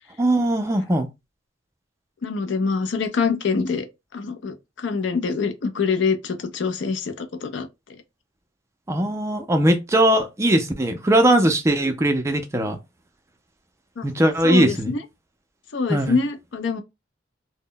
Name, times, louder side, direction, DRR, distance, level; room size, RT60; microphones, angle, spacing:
voice 1, 0.2-1.1 8.9-12.8 14.0-15.0 15.9-16.2, right 1 dB, 15° right, 0.3 m, -20 dB
voice 2, 2.2-3.9 4.1-8.0 14.0-14.1 14.4-15.0 15.7-16.8, left 5 dB, 70° left, 0.5 m, -25 dB
2.1 x 2.0 x 3.7 m
head